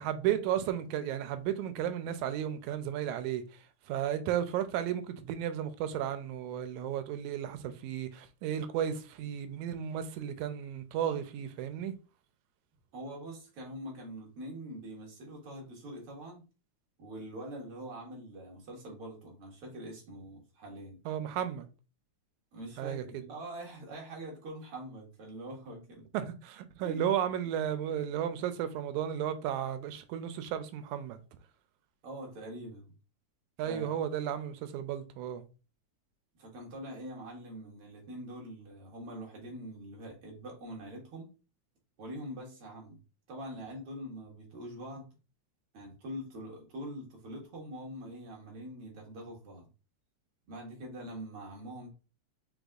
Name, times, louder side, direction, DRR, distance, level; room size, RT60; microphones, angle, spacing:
voice 1, 0.0-12.0 21.1-21.7 22.8-23.2 26.1-31.2 33.6-35.5, right 10 dB, 85° right, 2.0 m, -34 dB
voice 2, 12.9-16.4 17.0-21.0 22.5-26.1 26.8-27.0 32.0-32.9 33.7-33.9 36.4-41.3 42.0-43.0 43.3-45.1 45.7-49.7 50.5-51.9, right 1 dB, 55° right, 2.3 m, -44 dB
5.2 x 3.9 x 2.4 m
omnidirectional pair, 3.3 m